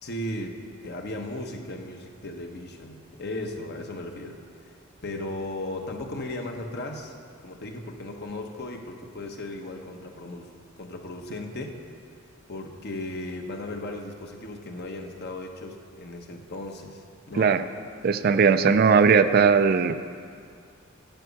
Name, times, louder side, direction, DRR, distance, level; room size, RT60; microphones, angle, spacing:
voice 1, 0.0-0.5 0.8-4.8 5.0-7.1 7.4-10.5 10.8-11.8 12.5-17.5, left 1 dB, 55° left, 3 dB, 1.1 m, -36 dB
voice 2, 18.0-20.0, right 5 dB, 50° right, 11 dB, 0.4 m, -19 dB
9.1 x 7.1 x 8.5 m, 2.2 s
head